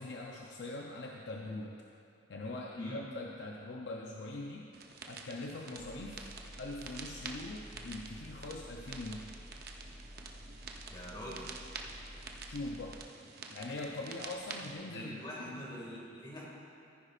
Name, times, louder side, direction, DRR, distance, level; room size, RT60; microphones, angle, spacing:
voice 1, 0.0-1.8 2.3-4.7 5.1-6.2 6.6-9.3 12.5-13.0 13.5-15.6, left 2 dB, 60° left, -1 dB, 0.6 m, -42 dB
sound 1, 4.7-14.7, right 4 dB, 50° right, 0.7 m, -48 dB
Engine, 5.8-13.0, equal, 10° right, 0.7 m, -51 dB
voice 2, 10.9-11.6 14.9-16.5, equal, 25° left, -4 dB, 2.0 m, -44 dB
14.0 x 9.9 x 2.4 m, 2.8 s
head